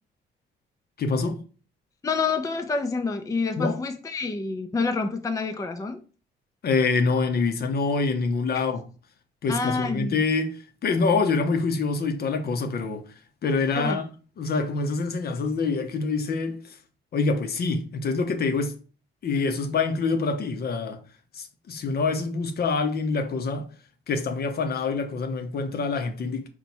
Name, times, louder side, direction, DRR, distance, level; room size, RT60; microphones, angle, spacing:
voice 1, 1.0-1.4 3.6-3.8 6.6-8.8 9.4-13.0 13.4-14.1 14.4-16.6 17.1-18.7 19.2-21.0 21.3-23.7 24.1-26.5, left 4 dB, 50° left, 0.7 m, -25 dB
voice 2, 2.0-6.0 8.5-8.6 9.5-10.2 13.8-14.1, left 4 dB, 15° left, 0.4 m, -28 dB
4.1 x 2.2 x 4.3 m
cardioid pair, 90°, 20 cm